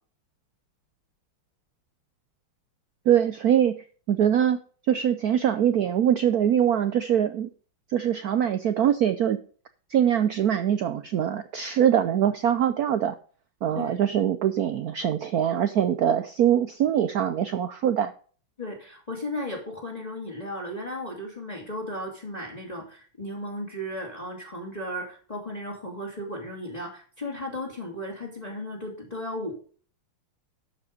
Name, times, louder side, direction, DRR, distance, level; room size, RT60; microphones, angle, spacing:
voice 1, 3.1-3.8 4.1-4.6 4.9-7.5 7.9-9.4 9.9-13.2 13.6-18.1, right 9 dB, 80° right, 11 dB, 0.8 m, -23 dB
voice 2, 18.6-29.5, left 1 dB, 20° left, -2 dB, 2.5 m, -35 dB
12.5 x 5.2 x 5.2 m, 0.42 s
omnidirectional pair, 2.4 m